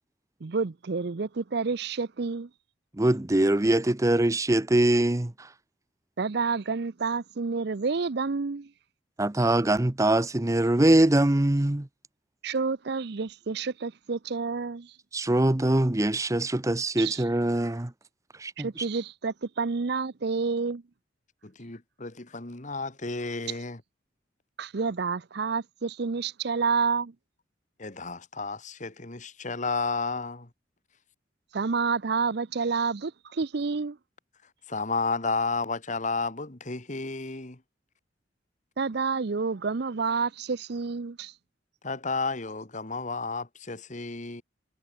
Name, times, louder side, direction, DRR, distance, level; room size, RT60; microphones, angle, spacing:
voice 1, 0.4-2.5 6.2-8.7 12.4-14.9 17.0-17.2 18.6-20.8 24.6-27.1 31.5-34.0 38.8-41.3, right 4 dB, 60° right, 0.6 m, -29 dB
voice 2, 3.0-5.5 9.2-11.9 15.1-17.9 18.4-18.9, right 1 dB, 15° right, 0.7 m, -23 dB
voice 3, 21.4-23.8 27.8-30.5 34.7-37.6 41.8-44.4, left 4 dB, 40° left, 1.9 m, -32 dB
head